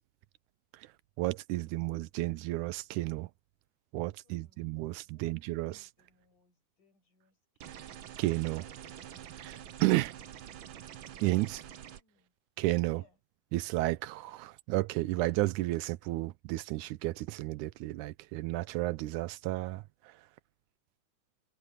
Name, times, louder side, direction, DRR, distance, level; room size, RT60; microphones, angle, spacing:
voice 1, 1.2-3.3 3.9-5.9 8.2-8.6 9.8-10.1 11.2-11.6 12.6-13.0 13.5-19.8, right 18 dB, 90° right, 2.1 m, -32 dB
voice 2, 4.2-8.0 8.5-10.6 11.1-12.3 12.8-13.2 13.6-13.7, left 6 dB, 85° left, 8.9 m, -68 dB
sound 1, 7.6-12.0, right 10 dB, 65° right, 1.2 m, -47 dB
omnidirectional pair, 3.5 m